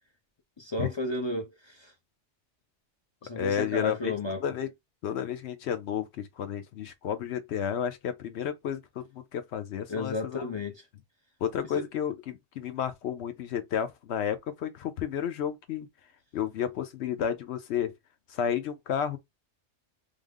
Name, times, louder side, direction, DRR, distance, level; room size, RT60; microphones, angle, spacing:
voice 1, 0.6-1.9 3.2-4.4 9.9-10.8, left 2 dB, 40° left, 0.4 m, -33 dB
voice 2, 3.4-4.1 4.4-4.7 5.0-10.5 11.4-15.9 16.3-17.9 18.3-19.2, left 8 dB, 70° left, 0.9 m, -32 dB
3.4 x 2.1 x 3.5 m
omnidirectional pair, 1.2 m